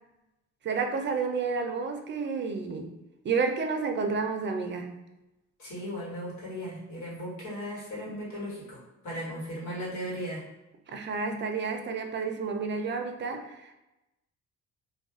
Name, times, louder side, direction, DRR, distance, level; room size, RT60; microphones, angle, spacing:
voice 1, 0.6-2.9 3.2-4.9 9.1-9.2 10.9-13.7, right 4 dB, 40° right, 5 dB, 0.5 m, -30 dB
voice 2, 5.6-10.4, equal, 70° left, -5 dB, 1.5 m, -37 dB
2.4 x 2.2 x 3.6 m, 0.97 s
cardioid pair, 90°, 30 cm